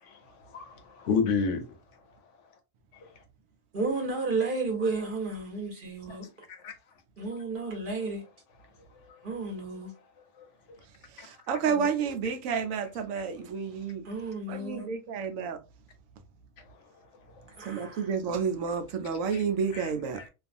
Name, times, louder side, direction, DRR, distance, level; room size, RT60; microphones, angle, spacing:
voice 1, 0.5-1.7 6.1-6.2 6.5-6.7 10.4-10.5 11.2-11.3 19.3-19.4 19.7-20.3, left 5 dB, 70° left, 0.9 m, -31 dB
voice 2, 3.7-6.3 7.2-8.2 9.2-9.9 11.6-11.9 14.0-14.9 17.6-18.1, right 3 dB, 45° right, 1.0 m, -32 dB
voice 3, 11.5-14.0 14.5-15.6 17.7-20.2, right 6 dB, 85° right, 1.0 m, -30 dB
2.6 x 2.4 x 2.5 m
omnidirectional pair, 1.3 m